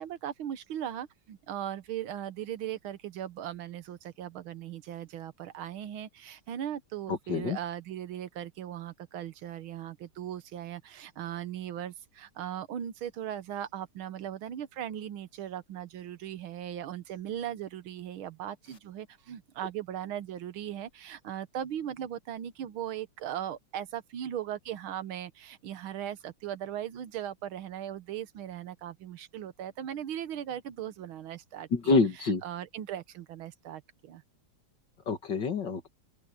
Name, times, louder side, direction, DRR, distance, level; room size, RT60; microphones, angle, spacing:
voice 1, 0.0-32.0 32.4-34.2, right 10 dB, 90° right, 1.9 m, -38 dB
voice 2, 7.1-7.6 31.7-32.4 35.1-35.9, left 4 dB, 60° left, 2.7 m, -27 dB
open air
omnidirectional pair, 2.2 m